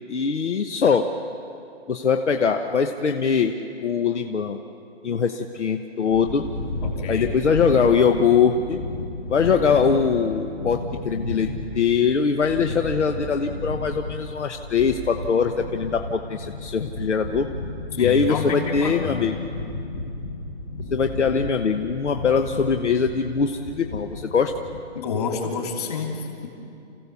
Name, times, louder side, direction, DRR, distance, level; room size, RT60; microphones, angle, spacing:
voice 1, 0.1-1.1 1.9-3.5 3.8-4.6 5.0-6.4 7.1-8.8 9.3-17.5 18.0-19.5 20.9-24.5, left 6 dB, 85° left, 5 dB, 1.2 m, -22 dB
sound 1, 6.1-24.8, left 2 dB, 10° left, 0.8 m, -33 dB
voice 2, 6.8-7.3 18.0-19.3 24.9-26.5, left 5 dB, 35° left, 1 dB, 3.2 m, -28 dB
29.0 x 16.0 x 7.0 m, 2.6 s
hypercardioid pair, 170°, 34 cm